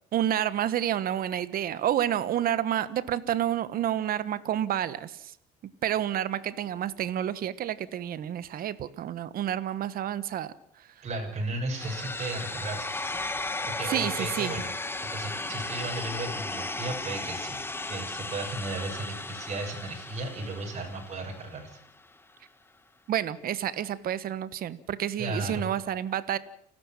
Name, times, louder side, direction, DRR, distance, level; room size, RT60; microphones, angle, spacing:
voice 1, 0.1-5.3 5.8-10.5 13.9-14.5 23.1-26.4, right 11 dB, 60° right, 15 dB, 1.4 m, -29 dB
voice 2, 11.0-12.9 13.7-14.7 15.1-17.6 17.9-21.8 25.2-25.7, right 2 dB, 40° right, -1 dB, 6.9 m, -35 dB
sound 1, 11.7-21.7, left 2 dB, 15° left, 1.5 m, -35 dB
30.0 x 12.0 x 7.5 m, 0.72 s
cardioid pair, 110°, 17 cm